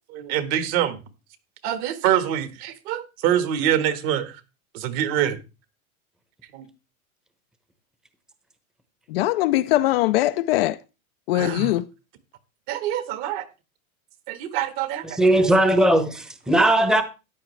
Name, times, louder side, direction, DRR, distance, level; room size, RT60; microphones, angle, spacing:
voice 1, 0.1-1.0 1.6-4.4 4.7-5.4 6.5-6.7 11.3-11.7 12.7-13.4 14.3-15.1, right 10 dB, 45° right, 1.6 m, -25 dB
voice 2, 9.1-10.8 11.3-11.8, left 16 dB, 45° left, 0.5 m, -21 dB
voice 3, 15.0-17.0, right 1 dB, ahead, 0.9 m, -18 dB
14.0 x 9.8 x 3.2 m
supercardioid pair, 140°, 43 cm